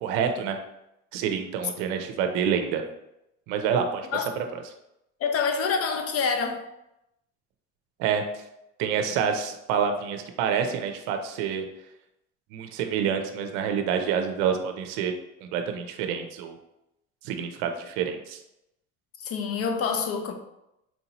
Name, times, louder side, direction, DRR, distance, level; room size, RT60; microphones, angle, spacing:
voice 1, 0.0-0.6 1.1-2.8 3.5-4.1 8.0-8.4 8.8-11.6 12.5-15.1 15.4-16.6 17.2-18.4, right 7 dB, 80° right, 0.6 m, -27 dB
voice 2, 5.2-6.7 19.2-20.3, left 5 dB, 45° left, 0.6 m, -26 dB
4.4 x 2.6 x 2.9 m
supercardioid pair, 90°, 33 cm